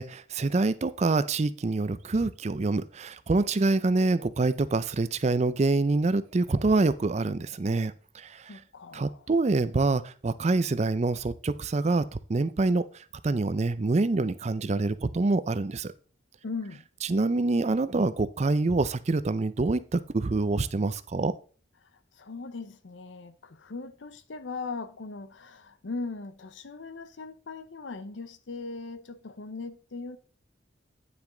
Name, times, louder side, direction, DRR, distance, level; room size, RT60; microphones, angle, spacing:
voice 1, 0.0-8.5 8.9-12.8 13.2-15.9 17.1-21.3, right 3 dB, 35° right, 0.4 m, -26 dB
voice 2, 8.5-9.2 16.4-16.9 21.8-30.2, left 3 dB, 70° left, 0.7 m, -39 dB
9.6 x 5.9 x 3.8 m
head